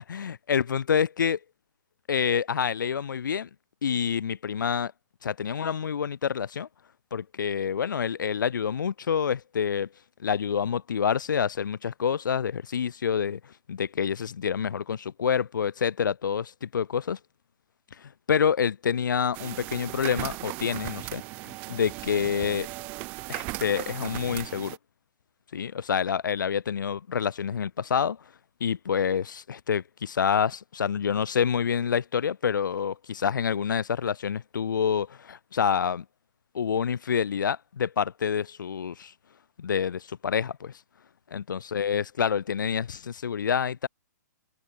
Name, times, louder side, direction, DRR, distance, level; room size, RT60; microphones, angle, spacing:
voice 1, 0.0-1.4 2.1-3.5 3.8-4.9 5.2-6.7 7.1-9.9 10.2-17.2 18.0-22.7 23.3-24.8 25.5-28.2 28.6-36.0 36.5-39.1 39.6-40.7 41.3-43.9, left 7 dB, 85° left, 0.9 m, -27 dB
sound 1, 19.3-24.8, right 25 dB, 15° right, 1.2 m, -37 dB
open air
hypercardioid pair, 180°, 10 cm